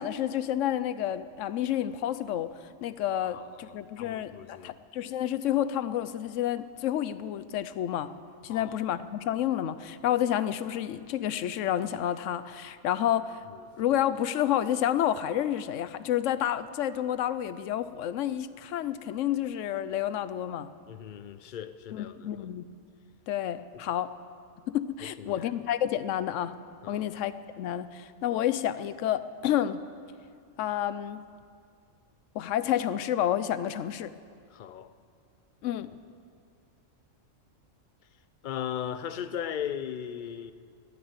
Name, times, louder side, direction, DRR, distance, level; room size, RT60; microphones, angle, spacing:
voice 1, 0.0-2.5 2.8-8.1 8.4-13.4 13.8-20.7 21.9-22.7 23.3-24.1 24.7-26.5 26.9-29.8 30.6-31.2 32.3-34.1 35.6-35.9, left 11 dB, 75° left, 0.9 m, -29 dB
voice 2, 3.2-4.7 8.5-8.8 20.9-22.5 25.2-25.5 26.8-27.0 34.5-34.9 38.4-40.5, left 9 dB, 55° left, 0.6 m, -37 dB
13.5 x 10.5 x 8.0 m
omnidirectional pair, 1.3 m